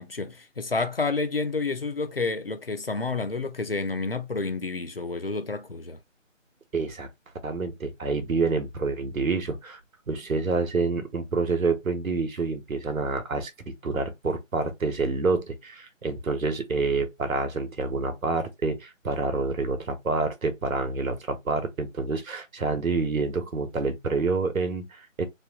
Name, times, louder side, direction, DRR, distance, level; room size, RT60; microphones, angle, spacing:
voice 1, 0.0-6.0, left 3 dB, 50° left, 0.5 m, -29 dB
voice 2, 6.7-7.1 7.4-9.8 10.1-25.2, right 4 dB, 90° right, 1.1 m, -28 dB
3.0 x 2.3 x 2.8 m
figure-of-eight pair, 175°, 40 cm